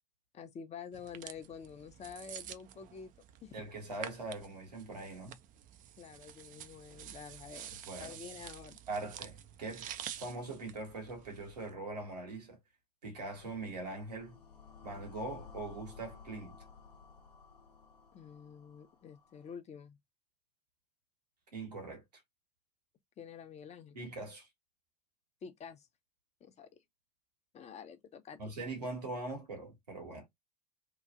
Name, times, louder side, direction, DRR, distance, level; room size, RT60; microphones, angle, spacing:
voice 1, 0.3-3.1 3.4-3.5 6.0-8.8 18.1-20.0 23.2-24.0 25.4-25.9 26.4-26.8 27.5-28.5, left 6 dB, 35° left, 0.7 m, -48 dB
sound 1, 0.9-11.7, right 11 dB, 40° right, 0.4 m, -49 dB
voice 2, 3.5-5.4 7.7-8.2 8.9-9.9 10.2-12.6 13.0-14.4 14.8-16.5 21.5-22.0 23.9-24.5 28.4-30.3, right 2 dB, 85° right, 1.3 m, -42 dB
sound 2, 13.3-19.5, left 6 dB, 85° left, 0.8 m, -55 dB
2.9 x 2.5 x 2.5 m
hypercardioid pair, 70°, 20 cm